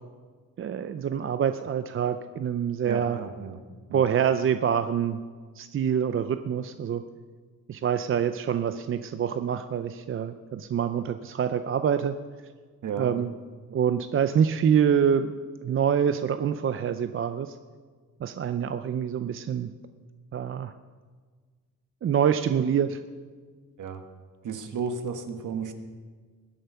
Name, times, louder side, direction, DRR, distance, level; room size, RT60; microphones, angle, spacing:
voice 1, 0.6-3.2 3.9-5.2 5.6-7.0 7.7-12.1 13.0-13.3 13.7-15.3 15.6-17.5 18.2-19.7 20.3-20.7 22.0-23.0, right 8 dB, 40° right, 10 dB, 0.5 m, -26 dB
voice 2, 2.9-3.6 3.9-4.0 12.8-13.1 23.8-24.0 24.4-25.7, right 5 dB, 60° right, 7 dB, 1.5 m, -33 dB
21.0 x 7.8 x 5.7 m, 1.5 s
wide cardioid pair, 160°, 34 cm